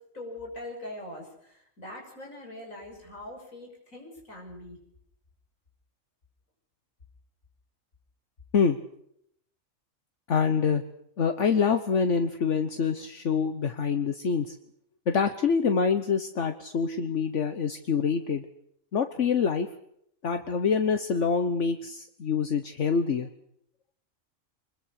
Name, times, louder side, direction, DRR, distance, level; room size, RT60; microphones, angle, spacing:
voice 1, 0.0-4.8, left 1 dB, 80° left, 1 dB, 6.8 m, -42 dB
voice 2, 10.3-10.8 11.2-14.6 15.1-18.5 18.9-19.7 20.2-23.3, left 6 dB, 65° left, 8 dB, 1.4 m, -26 dB
24.0 x 21.5 x 6.5 m, 0.73 s
omnidirectional pair, 1.4 m